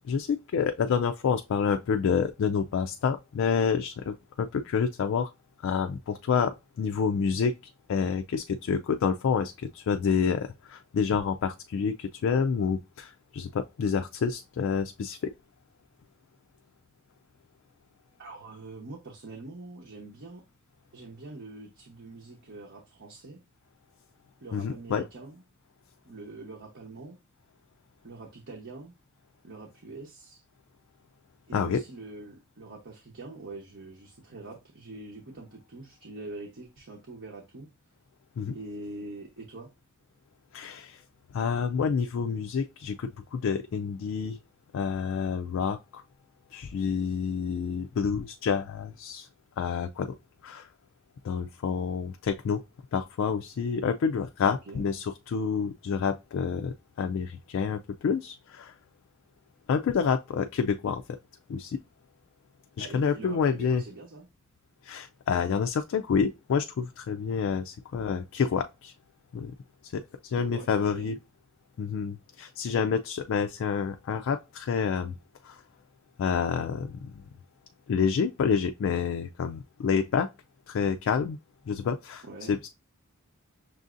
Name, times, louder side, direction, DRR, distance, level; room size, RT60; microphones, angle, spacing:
voice 1, 0.1-5.3 5.6-7.5 7.9-15.3 24.5-25.0 31.5-31.8 38.4-38.6 40.5-41.0 41.3-44.4 44.7-46.0 46.5-49.3 49.6-50.1 50.4-50.7 51.2-52.6 52.9-58.7 59.7-61.0 61.5-61.8 62.8-63.8 64.8-68.9 69.3-69.5 69.9-71.2 71.8-75.1 75.4-75.6 76.2-77.0 77.9-80.3 80.7-81.4 81.7-82.7, left 6 dB, 60° left, 0.3 m, -28 dB
voice 2, 18.2-20.4 20.9-23.4 24.4-25.4 26.0-27.2 28.0-28.9 29.4-30.4 31.5-37.7 38.5-39.7 54.5-54.9 62.8-64.3 70.4-71.2 82.2-82.6, right 2 dB, 60° right, 0.9 m, -44 dB
6.1 x 2.6 x 2.5 m
head